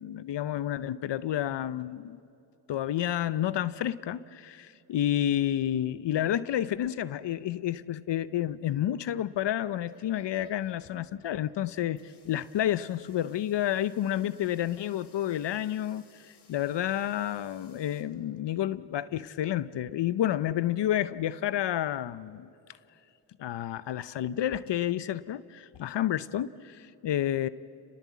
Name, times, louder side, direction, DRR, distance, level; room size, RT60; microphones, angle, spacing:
voice 1, 0.0-2.2 2.7-22.5 23.4-27.5, left 11 dB, 65° left, 0.7 m, -30 dB
sound 1, 9.8-18.0, left 6 dB, 85° left, 3.0 m, -60 dB
29.0 x 20.0 x 8.4 m
cardioid pair, 70°, 46 cm